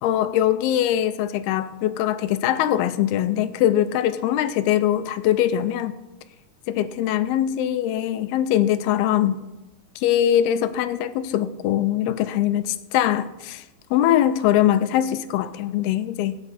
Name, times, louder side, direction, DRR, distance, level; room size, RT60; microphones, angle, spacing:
voice 1, 0.0-5.9 6.7-9.4 10.0-13.6 13.9-16.4, left 11 dB, 80° left, 12 dB, 2.5 m, -22 dB
18.0 x 9.1 x 4.2 m, 1.1 s
omnidirectional pair, 4.6 m